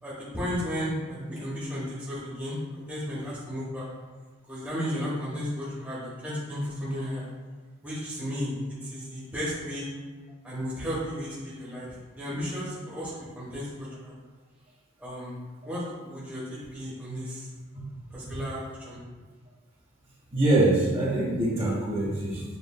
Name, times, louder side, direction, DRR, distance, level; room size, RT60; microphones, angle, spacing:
voice 1, 0.0-2.6 2.9-3.8 4.5-7.2 7.8-8.5 8.8-9.9 10.4-14.1 15.0-15.4 15.6-17.5 18.1-18.6 18.8-19.0, equal, 10° right, -9 dB, 1.0 m, -34 dB
voice 2, 20.3-22.4, right 1 dB, 30° right, -6 dB, 1.1 m, -24 dB
7.1 x 2.6 x 2.2 m, 1.4 s
head